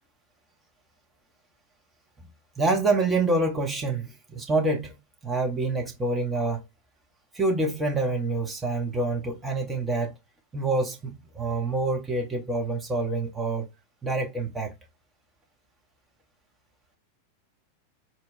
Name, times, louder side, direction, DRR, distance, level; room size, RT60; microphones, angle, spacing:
voice 1, 2.6-5.0 5.2-6.6 7.3-10.1 10.5-13.7 14.0-14.7, right 2 dB, 15° right, 0.7 m, -26 dB
4.1 x 2.1 x 2.4 m
figure-of-eight pair, 90°, 0 cm